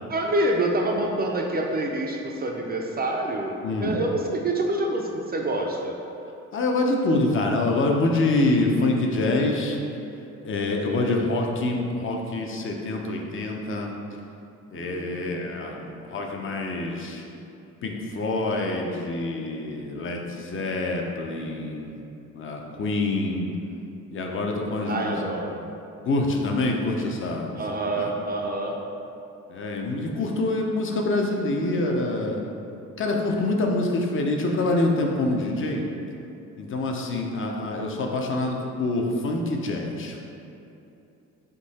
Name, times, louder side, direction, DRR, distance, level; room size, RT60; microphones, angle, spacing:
voice 1, 0.1-6.0 14.7-15.6 15.8-16.0 24.9-25.6 27.6-28.8, right 1 dB, 30° right, 0 dB, 0.4 m, -27 dB
voice 2, 3.6-4.0 6.5-9.8 10.4-13.9 14.7-17.2 17.8-21.9 22.3-23.5 24.1-25.2 26.0-27.6 28.0-28.1 29.5-32.4 33.0-35.8 36.6-40.2, left 2 dB, 45° left, 1 dB, 0.6 m, -26 dB
3.7 x 2.7 x 4.1 m, 2.8 s
cardioid pair, 90°, 30 cm